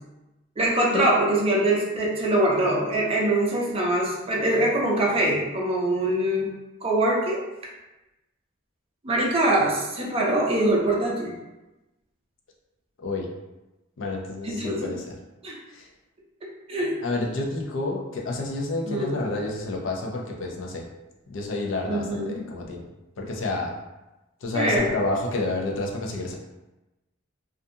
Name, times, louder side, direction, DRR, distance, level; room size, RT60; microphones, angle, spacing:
voice 1, 0.6-6.5 6.8-7.4 9.0-11.3 14.4-14.9 15.4-15.6 16.7-17.0 18.8-19.2 21.9-22.4 24.5-24.9, right 1 dB, 30° right, -3 dB, 0.6 m, -23 dB
voice 2, 14.0-15.1 15.7-15.9 17.0-20.9 21.3-22.8 23.2-23.7 24.4-26.3, left 2 dB, 65° left, 0 dB, 0.5 m, -29 dB
2.4 x 2.3 x 2.7 m, 1.0 s
head